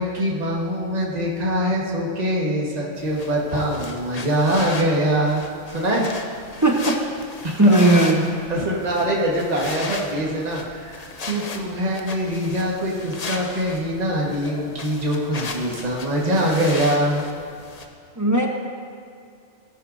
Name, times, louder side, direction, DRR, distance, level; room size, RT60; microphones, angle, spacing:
voice 1, 0.0-5.4 5.7-6.1 7.4-7.7 8.5-17.2, equal, 35° right, -3 dB, 1.6 m, -23 dB
sound 1, 3.0-17.9, left 3 dB, 40° left, 0.7 m, -36 dB
voice 2, 6.6-7.0 7.6-8.3 18.2-18.5, right 1 dB, 15° right, 0 dB, 0.8 m, -16 dB
16.5 x 9.9 x 2.7 m, 2.3 s
omnidirectional pair, 1.3 m